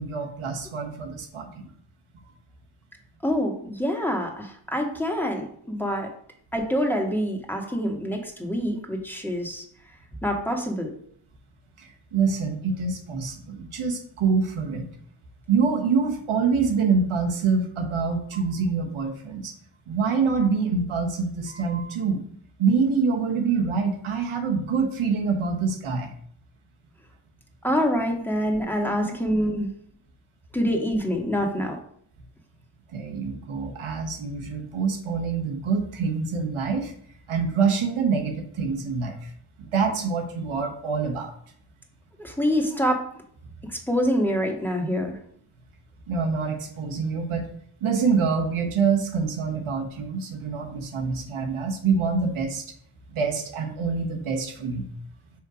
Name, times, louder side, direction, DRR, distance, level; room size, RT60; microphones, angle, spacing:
voice 1, 0.0-1.7 7.6-7.7 11.8-14.9 15.5-19.5 19.9-22.2 22.6-26.1 32.9-36.9 37.3-39.3 39.6-41.3 46.1-47.5 47.8-52.6 53.1-54.9, right 5 dB, 75° right, 2 dB, 1.4 m, -25 dB
voice 2, 3.2-6.1 6.5-9.7 10.2-10.9 27.6-29.7 30.5-31.8 42.2-43.0 43.6-45.2, equal, 5° left, 1 dB, 1.9 m, -26 dB
5.6 x 3.5 x 5.0 m, 0.62 s
supercardioid pair, 45°, 49 cm